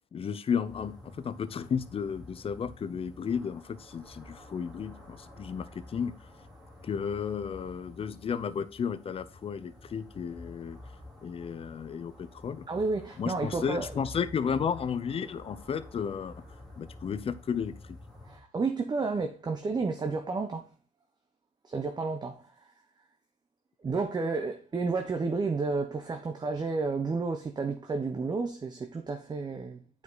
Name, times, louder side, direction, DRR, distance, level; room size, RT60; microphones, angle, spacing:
voice 1, 0.1-6.1 6.8-10.8 11.2-12.7 13.2-16.4 16.8-18.0, left 7 dB, 35° left, 0.6 m, -33 dB
sound 1, 0.6-18.4, left 1 dB, 5° left, 2.5 m, -50 dB
voice 2, 12.7-13.9 18.3-20.7 21.6-22.5 23.8-30.0, right 4 dB, 25° right, 0.9 m, -31 dB
8.5 x 4.9 x 4.0 m
cardioid pair, 110°, 17 cm